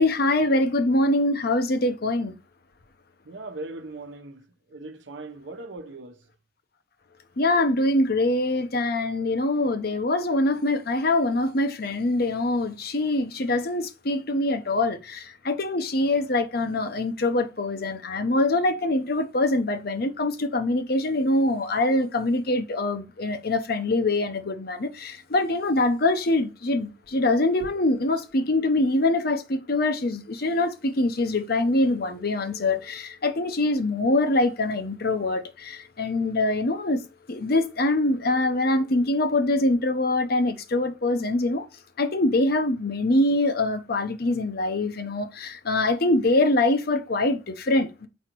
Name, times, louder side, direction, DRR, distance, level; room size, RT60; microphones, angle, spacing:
voice 1, 0.0-2.3 7.4-37.0 37.3-41.7 42.0-48.1, left 2 dB, 60° left, 0.8 m, -24 dB
voice 2, 3.2-6.3, right 2 dB, 80° right, 0.9 m, -39 dB
6.3 x 5.0 x 3.0 m
head